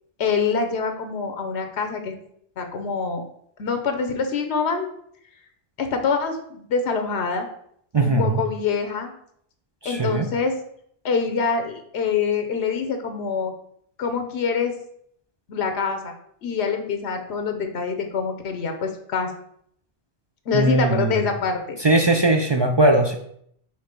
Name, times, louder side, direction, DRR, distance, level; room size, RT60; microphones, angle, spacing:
voice 1, 0.2-2.1 2.6-3.2 3.6-4.9 5.8-7.5 8.0-9.1 9.8-10.6 11.0-13.5 14.0-14.7 15.5-16.1 16.4-19.3 20.5-21.8, left 5 dB, 85° left, 6 dB, 1.1 m, -25 dB
voice 2, 7.9-8.4 9.8-10.3 20.5-21.1 21.8-23.1, right 2 dB, 35° right, 3 dB, 0.4 m, -19 dB
5.7 x 3.3 x 5.1 m, 0.68 s
omnidirectional pair, 1.1 m